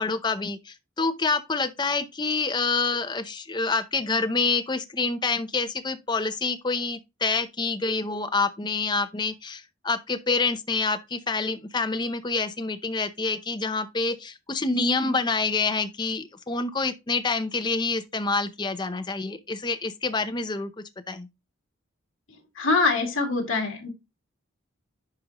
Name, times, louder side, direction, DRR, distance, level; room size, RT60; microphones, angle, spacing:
voice 1, 0.0-20.7 21.1-21.3, left 4 dB, 20° left, 0.6 m, -27 dB
voice 2, 22.6-23.9, left 3 dB, 70° left, 2.3 m, -24 dB
10.5 x 5.2 x 3.0 m
head